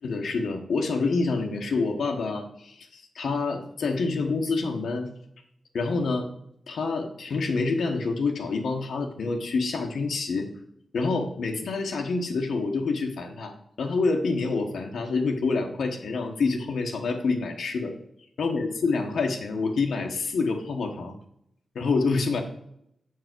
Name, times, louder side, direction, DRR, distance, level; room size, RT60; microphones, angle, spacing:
voice 1, 0.0-5.1 5.7-6.3 6.7-10.5 10.9-13.5 13.8-17.9 18.4-21.2 21.7-22.4, left 4 dB, 85° left, 2 dB, 1.1 m, -27 dB
7.3 x 4.7 x 6.1 m, 0.73 s
wide cardioid pair, 135°, 0 cm